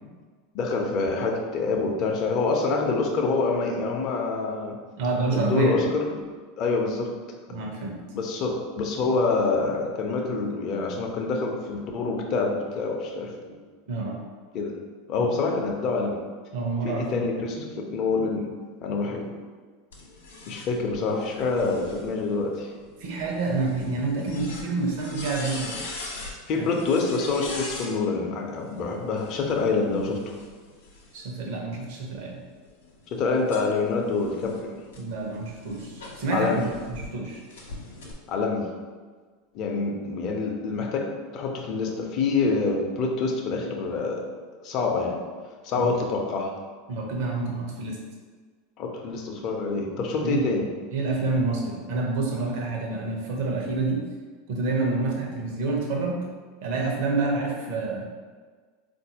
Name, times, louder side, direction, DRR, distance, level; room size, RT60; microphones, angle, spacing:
voice 1, 0.5-4.8 5.3-6.2 6.6-7.1 8.1-13.6 14.5-14.8 15.1-16.2 16.8-18.5 18.8-19.3 20.5-22.7 26.5-30.4 33.1-34.8 36.3-36.6 38.3-38.7 39.5-44.2 44.6-45.2 45.6-46.5 48.8-50.7, left 3 dB, 50° left, 2 dB, 0.6 m, -26 dB
voice 2, 5.0-5.9 7.5-7.9 13.9-14.2 16.5-17.3 23.0-25.8 26.5-26.6 31.1-32.4 35.0-36.6 36.9-37.4 45.7-45.9 46.9-48.0 50.2-50.5 50.9-54.0 54.5-56.3 56.6-58.0, right 3 dB, 65° right, -1 dB, 0.8 m, -28 dB
sound 1, 19.9-27.9 29.1-31.4 32.0-37.1 37.5-38.1, left 2 dB, 85° left, 0.7 m, -42 dB
4.0 x 2.6 x 2.8 m, 1.5 s
hypercardioid pair, 90°, 0 cm